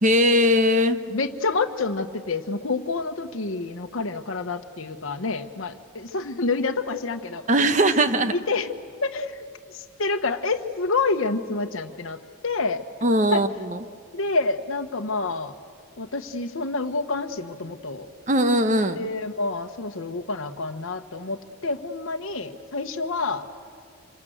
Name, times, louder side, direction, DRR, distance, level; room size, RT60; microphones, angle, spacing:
voice 1, 0.0-1.0 7.5-8.3 13.0-13.8 18.3-19.1, equal, 35° right, 10 dB, 0.9 m, -20 dB
voice 2, 1.1-7.4 8.3-8.7 9.0-9.4 9.7-12.8 13.3-13.4 14.1-15.5 16.0-18.1 19.0-23.4, left 3 dB, 70° left, 5 dB, 1.0 m, -28 dB
26.5 x 23.5 x 7.8 m, 2.1 s
head